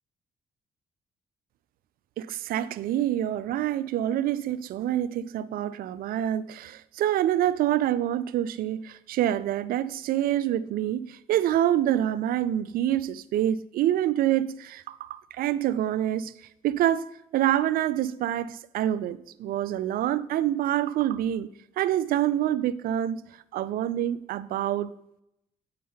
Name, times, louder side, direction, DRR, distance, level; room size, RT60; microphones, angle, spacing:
voice 1, 2.2-16.3 16.6-17.0 17.3-21.5 21.8-23.2 23.5-24.9, right 12 dB, 75° right, 17 dB, 0.4 m, -26 dB
9.3 x 5.3 x 4.0 m, 0.82 s
supercardioid pair, 60°, 15 cm